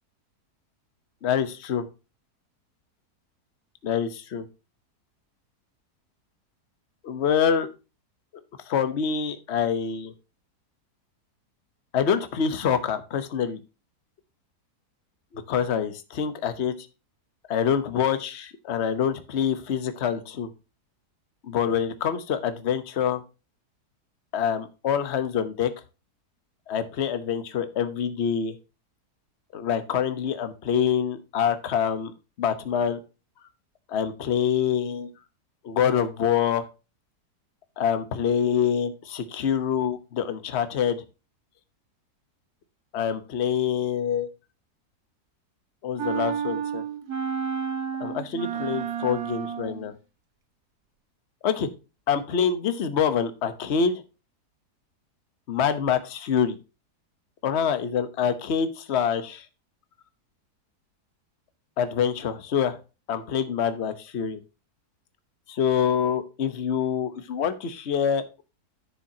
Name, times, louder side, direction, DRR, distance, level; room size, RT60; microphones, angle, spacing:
voice 1, 1.2-1.9 3.8-4.5 7.0-7.7 8.7-10.1 11.9-13.6 15.3-16.9 17.5-20.5 21.4-23.2 24.3-25.7 26.7-28.6 29.5-32.1 32.4-33.0 33.9-35.1 35.6-36.6 37.8-41.0 42.9-44.3 45.8-46.8 48.0-49.9 51.4-51.7 52.1-54.0 55.5-56.6 57.4-59.5 61.8-62.8 63.1-64.4 65.5-68.2, left 7 dB, 45° left, 11 dB, 1.1 m, -26 dB
sound 1, 46.0-49.9, right 7 dB, 70° right, 1.8 m, -30 dB
10.5 x 7.1 x 2.8 m, 0.30 s
omnidirectional pair, 1.7 m